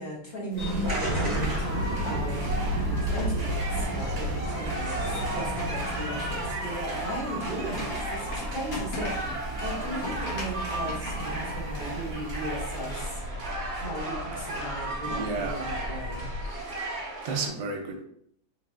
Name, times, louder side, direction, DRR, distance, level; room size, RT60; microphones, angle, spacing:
voice 1, 0.0-2.5 2.8-13.2 13.7-16.2, right 1 dB, 35° left, -5 dB, 1.0 m, -37 dB
sound 1, 0.5-13.0, left 2 dB, 70° left, 1.6 m, -42 dB
sound 2, 0.6-16.7, equal, 20° right, 1.4 m, -33 dB
sound 3, 0.8-17.5, right 2 dB, 45° right, 1.2 m, -36 dB
voice 2, 15.1-15.6 17.2-18.0, right 3 dB, 70° right, 3 dB, 1.1 m, -32 dB
3.9 x 3.5 x 2.3 m, 0.70 s
omnidirectional pair, 2.0 m